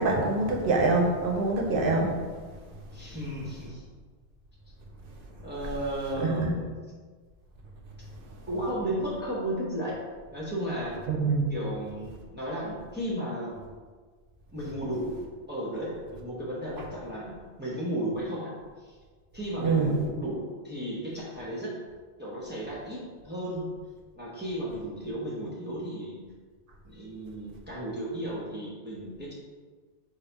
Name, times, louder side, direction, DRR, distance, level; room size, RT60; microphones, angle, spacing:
voice 1, 0.0-2.1 6.2-6.5 11.1-11.5 19.6-19.9, right 3 dB, 60° right, 1 dB, 0.8 m, -25 dB
voice 2, 2.9-3.8 5.4-6.7 8.5-10.0 10.3-11.0 11.5-13.6 14.5-15.2 15.5-18.5 18.8-19.0 19.3-21.7 22.2-23.7 24.1-26.2 26.8-29.3, right 1 dB, 10° right, -6 dB, 0.7 m, -34 dB
4.0 x 2.8 x 4.5 m, 1.5 s
omnidirectional pair, 1.1 m